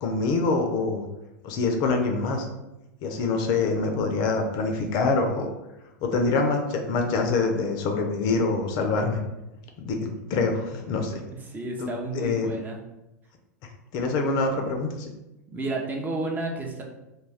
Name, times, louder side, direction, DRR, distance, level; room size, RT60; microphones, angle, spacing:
voice 1, 0.0-1.1 1.4-2.5 3.0-5.5 6.0-9.2 9.8-11.2 11.8-11.9 12.1-12.5 13.9-15.1, left 3 dB, 45° left, 3 dB, 0.5 m, -25 dB
voice 2, 11.3-12.8 15.5-16.8, right 2 dB, 20° right, 0 dB, 0.5 m, -31 dB
2.3 x 2.3 x 3.3 m, 0.97 s
hypercardioid pair, 100°, 9 cm